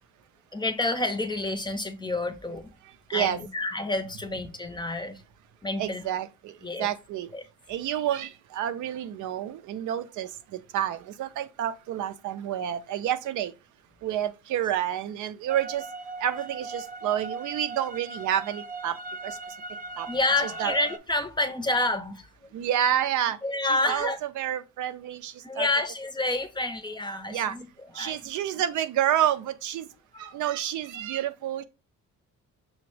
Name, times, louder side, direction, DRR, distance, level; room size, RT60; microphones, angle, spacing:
voice 1, 0.5-2.7 3.1-5.2 5.6-6.0 6.6-6.9 7.3-7.4 20.1-22.5 23.4-24.2 25.4-28.2 30.1-30.4, left 2 dB, 15° left, 0.6 m, -29 dB
voice 2, 5.8-6.5 6.8-7.3 7.7-10.3 10.7-13.5 14.0-15.8 16.2-18.9 19.2-19.4 20.0-20.1 20.4-20.7 22.5-23.4 23.8-25.7 27.3-27.5 28.0-29.8 30.2-31.6, right 11 dB, 75° right, 0.5 m, -29 dB
sound 1, 15.5-21.0, right 3 dB, 30° right, 0.6 m, -39 dB
5.9 x 2.1 x 3.1 m
cardioid pair, 90°, 30 cm